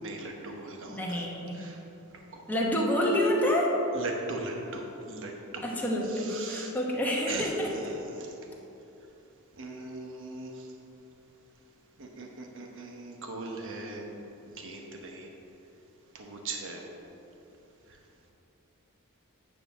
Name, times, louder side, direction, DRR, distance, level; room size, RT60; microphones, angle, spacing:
voice 1, 0.0-1.3 1.5-1.8 2.3-2.4 3.9-5.6 6.1-6.7 7.3-8.3 9.6-10.7 12.0-14.0 14.5-15.3 16.1-16.8, right 3 dB, 60° right, 1 dB, 1.0 m, -39 dB
voice 2, 0.9-1.6 2.5-3.7 5.6-7.7, left 1 dB, 10° left, -3 dB, 1.2 m, -28 dB
9.2 x 4.2 x 7.0 m, 3.0 s
head